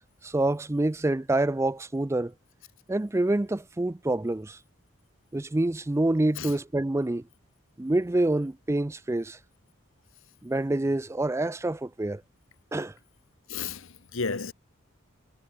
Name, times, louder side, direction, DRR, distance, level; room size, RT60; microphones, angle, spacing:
voice 1, 0.2-2.3 2.9-4.6 5.3-7.2 7.8-9.4 10.4-12.2 12.7-12.9, right 2 dB, 15° right, 0.4 m, -27 dB
voice 2, 13.5-14.5, left 4 dB, 70° left, 1.3 m, -33 dB
head